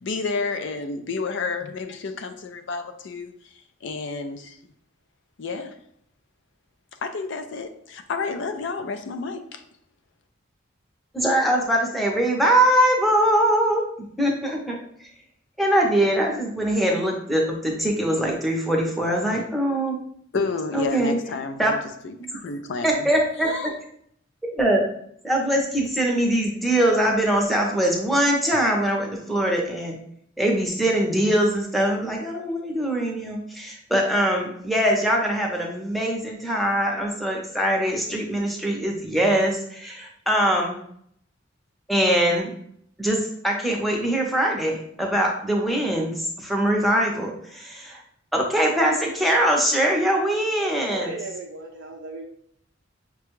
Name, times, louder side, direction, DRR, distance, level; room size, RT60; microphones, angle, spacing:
voice 1, 0.0-3.3 3.8-4.5 5.4-5.7 7.0-9.6 20.3-21.8 22.0-23.0 23.4-23.7, left 4 dB, 65° left, 8 dB, 0.4 m, -30 dB
voice 2, 11.1-13.8 14.2-14.8 15.6-20.0 20.7-21.2 21.6-21.7 22.8-23.7 24.4-24.8 25.2-29.9 30.4-40.8 41.9-42.5 43.0-43.2 43.4-48.0 48.3-51.1, right 1 dB, ahead, -1 dB, 0.7 m, -22 dB
voice 3, 50.6-52.3, right 3 dB, 85° right, -1 dB, 0.5 m, -36 dB
5.8 x 2.2 x 3.0 m, 0.67 s
head